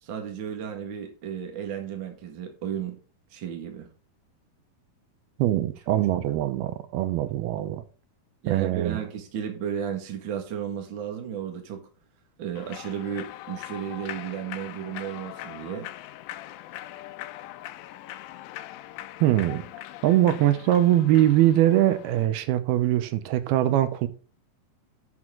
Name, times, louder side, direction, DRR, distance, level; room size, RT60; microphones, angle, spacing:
voice 1, 0.0-3.0 3.3-3.9 8.4-11.8 12.4-15.9, right 8 dB, 45° right, 1.8 m, -33 dB
voice 2, 5.4-7.8 8.5-9.0 19.2-19.6 20.0-24.1, right 13 dB, 85° right, 2.7 m, -22 dB
Human voice / Clapping / Cheering, 12.6-22.3, left 14 dB, 80° left, 2.2 m, -41 dB
12.5 x 6.2 x 3.7 m
omnidirectional pair, 4.4 m